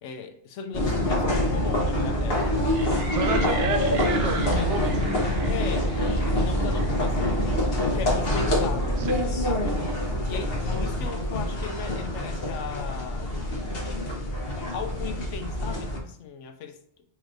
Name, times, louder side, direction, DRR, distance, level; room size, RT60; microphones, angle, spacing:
voice 1, 0.0-2.4 4.4-4.7 5.5-7.3 7.8-9.0 9.5-9.8 10.3-13.4 14.7-16.8, left 6 dB, 85° left, 0.9 m, -37 dB
sound 1, 0.7-16.0, left 1 dB, 55° left, 1.0 m, -26 dB
sound 2, 2.7-8.0, right 3 dB, 50° right, 0.9 m, -38 dB
voice 2, 3.1-5.3 9.0-9.2, right 5 dB, 75° right, 0.9 m, -30 dB
4.8 x 3.1 x 2.5 m
omnidirectional pair, 1.2 m